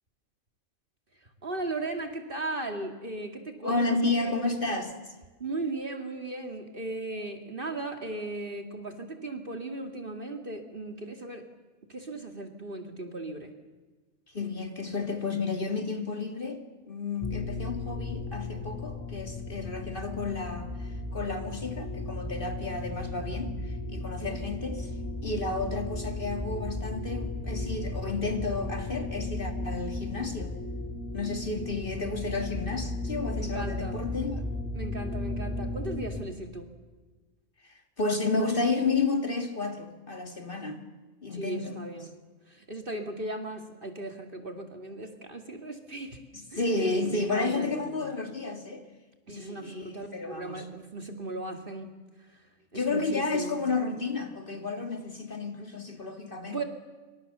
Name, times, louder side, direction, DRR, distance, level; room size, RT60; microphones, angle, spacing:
voice 1, 1.4-4.3 5.4-11.5 11.9-13.5 24.2-24.4 31.7-31.9 33.3-34.1 34.7-36.7 41.3-42.1 42.5-46.2 46.5-46.6 47.1-48.0 49.3-51.9 52.7-53.6 56.5-56.6, right 2 dB, 40° right, 5 dB, 2.4 m, -37 dB
voice 2, 3.6-4.9 14.3-24.9 25.2-30.6 31.1-34.4 37.6-40.8 41.2-41.8 46.3-48.9 49.3-50.6 52.7-56.6, left 3 dB, 40° left, 6 dB, 2.3 m, -32 dB
sound 1, 17.2-36.2, left 2 dB, 10° left, 3.4 m, -35 dB
27.0 x 24.5 x 6.8 m, 1.3 s
omnidirectional pair, 1.5 m